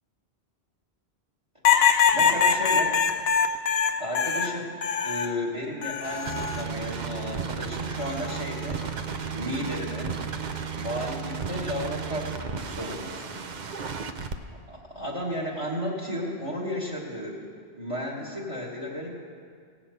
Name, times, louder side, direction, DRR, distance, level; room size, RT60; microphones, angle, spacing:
sound 1, 1.6-5.4 5.8-6.6 8.0-8.4, left 7 dB, 70° left, 0.9 m, -23 dB
voice 1, 2.1-2.9 4.0-4.7 5.0-8.9 9.3-10.1 10.7-13.4 14.0-14.2 14.7-17.5 17.7-19.1, left 1 dB, 30° right, -3 dB, 1.6 m, -33 dB
sound 2, 6.0-14.4, right 6 dB, 50° right, 0.7 m, -34 dB
16.5 x 5.8 x 8.0 m, 2.1 s
omnidirectional pair, 1.1 m